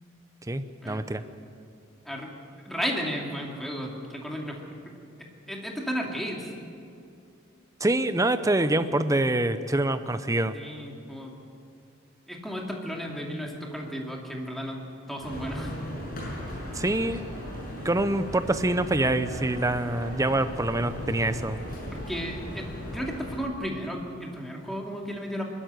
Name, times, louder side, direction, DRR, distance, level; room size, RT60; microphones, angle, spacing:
voice 1, 0.5-1.2 7.8-10.6 16.7-17.2 17.8-21.6, right 2 dB, 15° right, 11 dB, 0.7 m, -25 dB
voice 2, 2.6-4.6 4.8-4.9 5.2-6.5 8.6-8.7 10.5-11.3 12.3-14.8 15.1-15.7 21.9-25.4, equal, ahead, -1 dB, 2.5 m, -34 dB
sound 1, 15.2-23.4, left 1 dB, 50° left, 6.2 m, -37 dB
22.5 x 12.5 x 9.3 m, 2.4 s
head